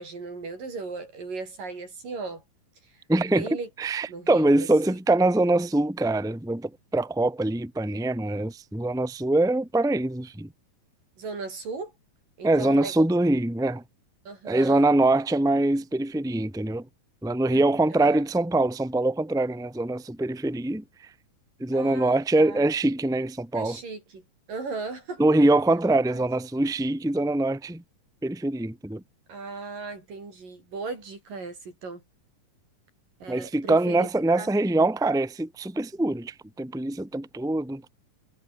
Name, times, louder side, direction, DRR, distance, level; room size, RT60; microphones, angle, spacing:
voice 1, 0.0-2.4 2.9-3.7 4.1-4.7 11.2-11.9 12.4-12.9 14.3-14.9 17.5-17.7 17.9-18.2 21.7-22.6 23.5-25.2 26.1-26.3 29.3-32.0 33.2-34.1 34.4-34.5, right 4 dB, 75° right, 8.9 m, -37 dB
voice 2, 3.1-3.5 3.8-10.5 12.4-13.8 14.4-16.8 17.2-20.8 21.6-23.8 25.2-27.8 28.2-29.0 33.3-37.8, right 2 dB, ahead, 2.0 m, -24 dB
omnidirectional pair, 3.9 m